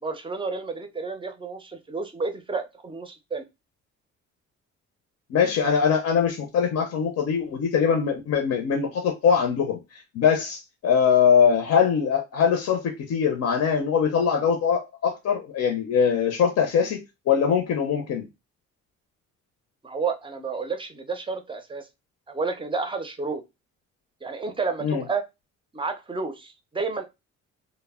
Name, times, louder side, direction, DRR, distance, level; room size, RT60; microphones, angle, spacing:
voice 1, 0.0-3.4 19.8-21.9 22.3-23.4 24.2-25.2 25.7-27.0, right 4 dB, 15° right, 0.5 m, -31 dB
voice 2, 5.3-17.0 17.3-18.2 24.8-25.0, left 7 dB, 60° left, 0.6 m, -22 dB
2.1 x 2.0 x 3.4 m
cardioid pair, 90°, 30 cm